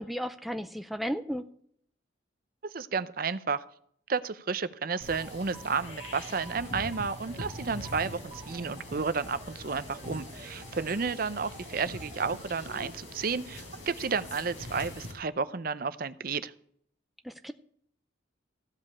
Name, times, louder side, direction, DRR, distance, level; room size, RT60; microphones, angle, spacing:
voice 1, 0.0-1.5 17.3-17.5, equal, ahead, 8 dB, 0.4 m, -34 dB
voice 2, 2.7-3.6 4.1-16.5, right 5 dB, 45° right, 14 dB, 0.6 m, -32 dB
sound 1, 5.0-15.1, left 1 dB, 75° left, 4.1 m, -43 dB
sound 2, 5.1-12.8, right 3 dB, 25° right, 1.0 m, -51 dB
15.0 x 5.3 x 8.4 m, 0.64 s
head